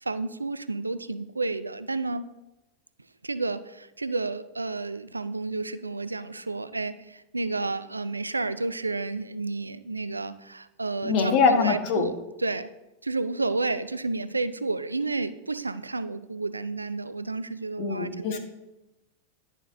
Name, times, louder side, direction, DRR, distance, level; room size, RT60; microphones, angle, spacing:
voice 1, 0.0-2.3 3.2-12.1 12.4-12.7 13.0-18.4, right 3 dB, 80° right, 14 dB, 0.3 m, -31 dB
voice 2, 11.0-12.1 17.8-18.4, left 5 dB, 40° left, 4 dB, 1.2 m, -23 dB
10.5 x 6.4 x 2.6 m, 0.97 s
figure-of-eight pair, 90°, 0 cm